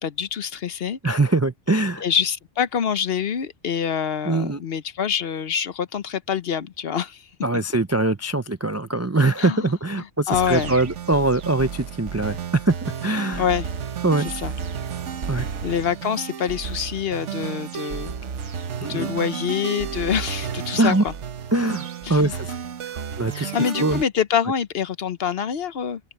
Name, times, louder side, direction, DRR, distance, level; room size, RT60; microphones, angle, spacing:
voice 1, 0.0-1.0 2.0-7.2 9.4-9.7 10.3-10.7 13.4-13.7 14.2-14.5 15.6-18.1 18.9-21.1 22.0-22.3 23.3-26.0, left 8 dB, 60° left, 1.0 m, -25 dB
voice 2, 1.0-2.0 4.3-4.6 7.4-13.4 14.0-14.3 15.3-15.5 18.8-19.1 20.8-21.0 21.5-22.5 22.8-23.5 23.8-24.0, right 2 dB, 25° right, 0.3 m, -22 dB
sound 1, 10.3-24.0, right 7 dB, 85° right, 1.3 m, -32 dB
open air
omnidirectional pair, 1.2 m